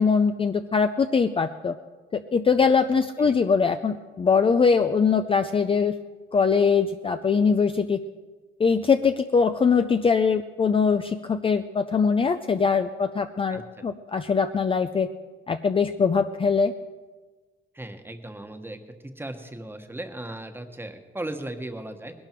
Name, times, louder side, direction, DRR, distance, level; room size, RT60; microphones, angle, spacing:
voice 1, 0.0-1.8 2.1-5.9 6.3-8.0 8.6-15.1 15.5-16.7, left 5 dB, 25° left, 8 dB, 0.5 m, -22 dB
voice 2, 13.5-13.8 17.7-18.8 19.2-22.1, right 1 dB, 10° right, 6 dB, 1.3 m, -37 dB
20.0 x 11.5 x 4.6 m, 1.4 s
cardioid pair, 100°, 21 cm